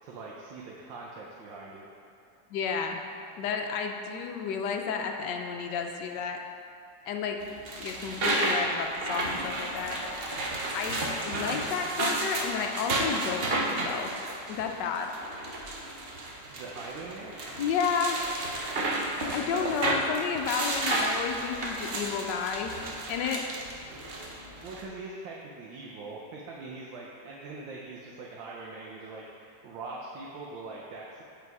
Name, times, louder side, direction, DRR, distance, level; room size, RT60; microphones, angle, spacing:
voice 1, 0.0-1.9 16.5-17.3 24.6-31.2, right 3 dB, 85° right, -3 dB, 1.5 m, -42 dB
voice 2, 2.5-3.0 3.4-6.4 7.1-7.4 7.8-10.0 10.7-14.1 14.5-15.1 17.6-18.2 19.3-22.8 23.1-23.4, left 6 dB, 75° left, 3 dB, 1.2 m, -31 dB
sound 1, 7.4-24.8, right 2 dB, 60° right, 0.6 m, -32 dB
7.6 x 4.0 x 4.6 m, 2.6 s
omnidirectional pair, 2.0 m